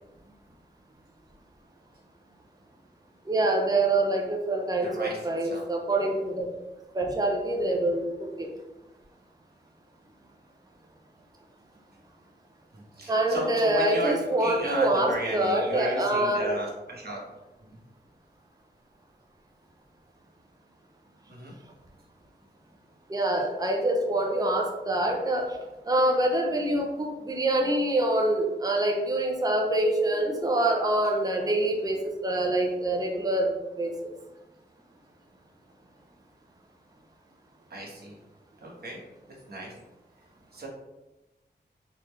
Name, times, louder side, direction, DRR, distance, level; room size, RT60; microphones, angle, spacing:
voice 1, 3.3-6.5 6.9-8.5 13.1-16.5 23.1-25.5 25.8-33.9, right 1 dB, 20° right, 1 dB, 0.6 m, -25 dB
voice 2, 4.8-5.6 12.7-14.1 14.4-17.2 17.6-17.8 21.3-21.5 37.7-38.1 38.6-39.0 39.5-39.7 40.5-40.7, right 1 dB, 60° right, -3 dB, 1.3 m, -34 dB
4.0 x 3.2 x 3.2 m, 1.0 s
wide cardioid pair, 75°, 18 cm